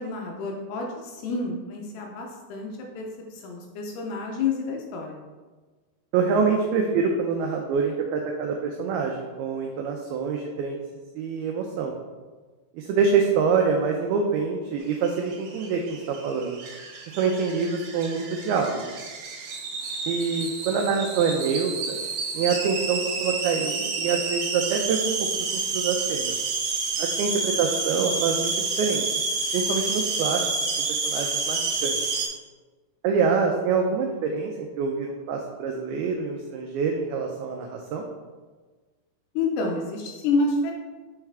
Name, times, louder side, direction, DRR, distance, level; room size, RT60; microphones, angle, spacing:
voice 1, 0.0-5.2 39.4-40.7, left 3 dB, 80° left, 0 dB, 2.5 m, -29 dB
voice 2, 6.1-10.8 11.2-11.9 12.7-16.6 17.2-18.8 20.1-22.0 22.3-26.4 27.0-28.5 28.8-29.2 29.5-30.4 31.0-32.0 33.0-38.1, right 5 dB, 90° right, 2 dB, 2.2 m, -26 dB
sound 1, 14.9-32.3, right 4 dB, 70° right, 2.3 m, -29 dB
7.2 x 4.7 x 3.3 m, 1.3 s
omnidirectional pair, 5.0 m